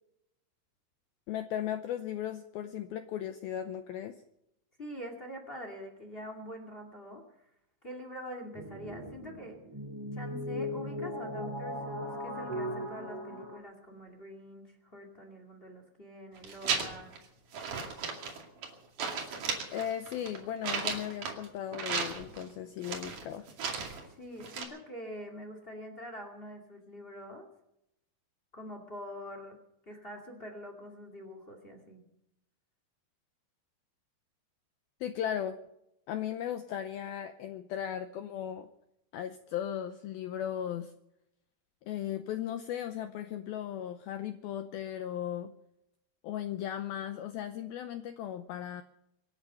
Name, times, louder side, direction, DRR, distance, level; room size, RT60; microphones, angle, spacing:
voice 1, 1.3-4.2 19.7-23.5 35.0-35.6 36.1-38.7 39.1-40.9 41.9-45.5 46.2-48.8, left 10 dB, 85° left, 9 dB, 2.1 m, -36 dB
voice 2, 4.8-7.5 7.8-9.6 10.1-17.3 24.0-27.5 28.5-29.6 29.8-32.0, equal, 25° left, 3 dB, 1.2 m, -45 dB
sound 1, 8.5-13.6, left 1 dB, 5° right, 7.1 m, -38 dB
sound 2, 16.4-17.2 17.5-18.7 19.0-21.4 21.7-22.5 22.8-24.1 24.4-24.6, right 5 dB, 50° right, 3.5 m, -35 dB
26.0 x 9.8 x 5.5 m, 0.83 s
omnidirectional pair, 5.3 m